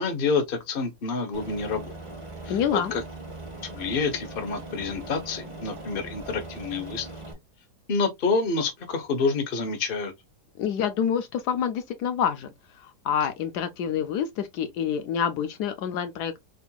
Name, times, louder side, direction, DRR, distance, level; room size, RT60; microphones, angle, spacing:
voice 1, 0.0-2.0 2.4-3.0 3.6-7.1 7.9-10.1, left 4 dB, 40° left, 1.0 m, -28 dB
Aircraft, 1.3-7.3, right 2 dB, 20° right, 1.2 m, -40 dB
voice 2, 2.5-2.9 10.6-16.4, left 8 dB, 75° left, 1.1 m, -27 dB
4.3 x 3.8 x 2.3 m
omnidirectional pair, 1.8 m